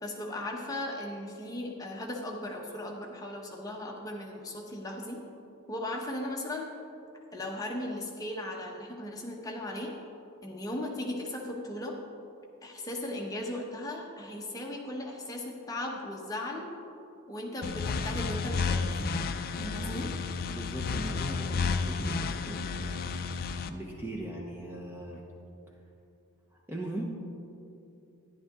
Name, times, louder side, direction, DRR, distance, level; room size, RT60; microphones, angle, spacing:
voice 1, 0.0-5.2 5.7-6.7 7.3-9.9 10.4-12.0 12.6-16.7 17.3-19.0 19.6-20.1, left 1 dB, 15° left, -1 dB, 1.0 m, -37 dB
sound 1, 17.6-23.7, left 4 dB, 40° left, 0.4 m, -32 dB
voice 2, 19.6-20.1 20.5-25.2 26.5-27.0, right 1 dB, 10° right, -2 dB, 0.8 m, -40 dB
11.0 x 10.5 x 3.7 m, 2.7 s
head